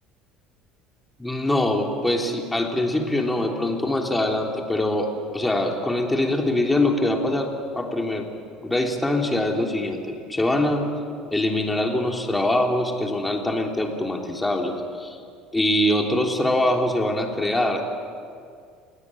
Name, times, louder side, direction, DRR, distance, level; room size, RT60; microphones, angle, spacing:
voice 1, 1.2-8.3 8.6-10.8 11.3-15.2 15.5-17.9, left 1 dB, 10° left, 1 dB, 3.4 m, -23 dB
29.5 x 18.0 x 8.9 m, 2.2 s
cardioid pair, 130°, 0 cm